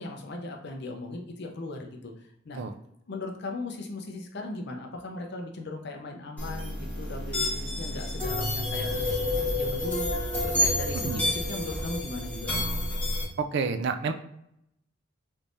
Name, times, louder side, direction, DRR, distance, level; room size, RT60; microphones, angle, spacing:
voice 1, 0.0-2.1 2.4-2.6 3.1-12.5, left 2 dB, 55° left, 2 dB, 0.6 m, -38 dB
sound 1, 6.4-13.2, left 1 dB, 10° left, 1.4 m, -29 dB
voice 2, 13.4-14.1, right 5 dB, 60° right, 8 dB, 0.3 m, -29 dB
3.4 x 3.1 x 2.6 m, 0.79 s
head